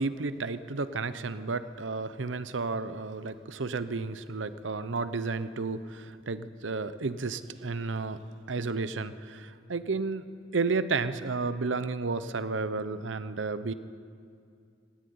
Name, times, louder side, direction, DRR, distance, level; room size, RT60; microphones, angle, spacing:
voice 1, 0.0-8.2 8.5-10.2 10.5-13.7, right 4 dB, 85° right, 13 dB, 0.8 m, -32 dB
17.5 x 17.0 x 9.5 m, 2.3 s
head